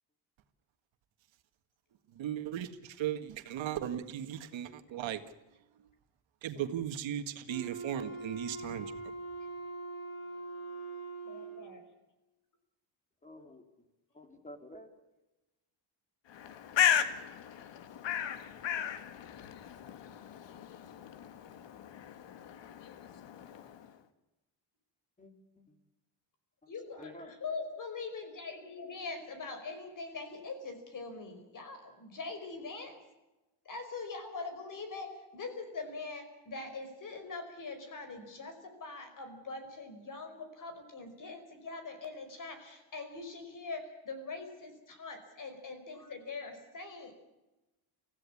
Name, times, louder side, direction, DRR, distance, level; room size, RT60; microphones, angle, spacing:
voice 1, 2.1-5.2 6.4-8.9, right 10 dB, 70° right, 8 dB, 1.8 m, -37 dB
Wind instrument woodwind instrument, 7.5-11.8, right 3 dB, 90° left, 7.5 m, -42 dB
voice 2, 11.2-11.8 26.7-33.0 33.6-47.1, left 3 dB, 40° left, 8 dB, 5.0 m, -43 dB
voice 3, 13.2-13.6 14.1-14.9 25.2-25.7 26.9-27.3, left 1 dB, 15° left, 6 dB, 3.5 m, -50 dB
Bird, 16.3-23.9, left 9 dB, 65° left, 1.7 m, -35 dB
25.0 x 15.5 x 8.5 m, 1.0 s
cardioid pair, 150°, 47 cm